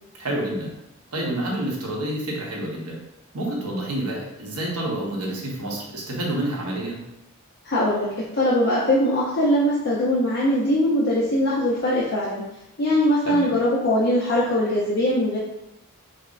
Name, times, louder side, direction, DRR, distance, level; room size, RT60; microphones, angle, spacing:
voice 1, 0.2-0.7 1.1-3.0 3.3-7.0 13.2-13.5, right 1 dB, 90° right, -2 dB, 0.9 m, -28 dB
voice 2, 7.6-8.1 8.3-12.4 12.8-15.4, left 1 dB, 45° left, -6 dB, 0.5 m, -21 dB
5.3 x 2.1 x 2.5 m, 0.88 s
head